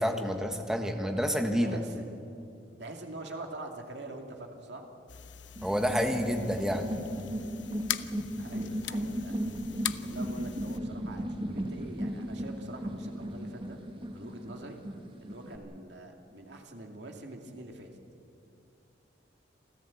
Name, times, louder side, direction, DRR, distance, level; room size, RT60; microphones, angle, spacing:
voice 1, 0.0-1.8 5.6-6.8, equal, 5° right, 5 dB, 1.5 m, -29 dB
voice 2, 1.6-2.1 2.8-4.9 8.3-9.4 10.0-13.8 14.1-14.8 15.2-17.9, right 2 dB, 70° right, 3 dB, 2.4 m, -44 dB
sound 1, 5.1-10.8, left 11 dB, 80° left, 0.7 m, -41 dB
sound 2, 5.6-15.6, equal, 30° right, 1.7 m, -36 dB
27.5 x 14.0 x 8.6 m, 2.7 s
head